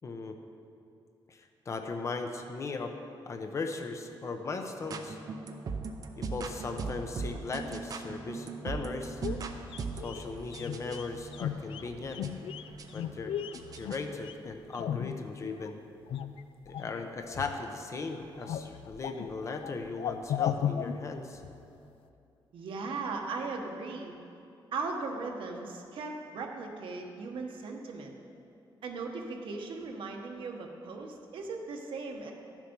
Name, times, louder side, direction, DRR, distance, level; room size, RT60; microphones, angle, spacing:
voice 1, 0.0-0.3 1.3-2.9 3.3-5.2 6.2-9.2 10.0-12.2 12.9-13.3 13.7-15.8 16.7-21.4, left 3 dB, 35° left, 5 dB, 0.7 m, -38 dB
sound 1, 4.8-14.2, right 4 dB, 45° right, 0.6 m, -40 dB
sound 2, 9.2-15.7 16.1-17.0 17.3-18.0 18.2-21.6 21.9-22.0, left 9 dB, 85° left, 0.4 m, -36 dB
voice 2, 22.5-24.1 24.7-28.1 28.8-32.3, right 3 dB, 70° right, 2 dB, 1.2 m, -38 dB
12.5 x 7.4 x 5.4 m, 2.6 s
wide cardioid pair, 175°, 9 cm